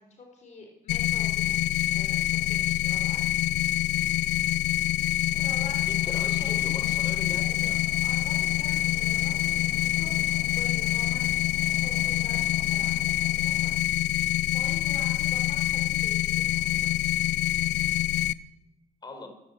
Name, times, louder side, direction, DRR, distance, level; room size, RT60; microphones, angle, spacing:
voice 1, 0.0-3.3 5.1-5.9 6.4-6.5 8.0-9.6 9.9-13.7 14.4-16.9, left 3 dB, 45° left, 3 dB, 4.1 m, -47 dB
sound 1, 0.9-18.3, left 14 dB, 90° left, 0.6 m, -26 dB
sound 2, 5.3-13.8, right 6 dB, 40° right, 1.6 m, -48 dB
voice 2, 5.9-7.8 19.0-19.3, left 2 dB, 25° left, 5 dB, 4.7 m, -40 dB
21.5 x 14.5 x 8.4 m, 1.0 s
cardioid pair, 110°, 17 cm